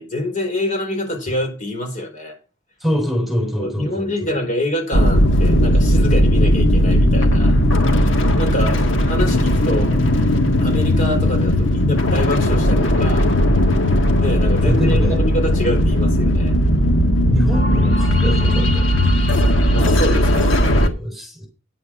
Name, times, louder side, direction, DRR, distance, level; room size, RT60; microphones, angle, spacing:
voice 1, 0.0-2.4 3.6-7.6 8.0-10.0 10.6-13.3 14.2-16.5 19.7-20.5, left 1 dB, 40° left, 4.7 m, -26 dB
voice 2, 2.8-4.3 14.6-15.2 17.3-19.0 20.4-21.5, equal, ahead, 3.7 m, -24 dB
sound 1, 4.9-20.9, equal, 75° left, 1.9 m, -16 dB
10.5 x 8.3 x 5.9 m
head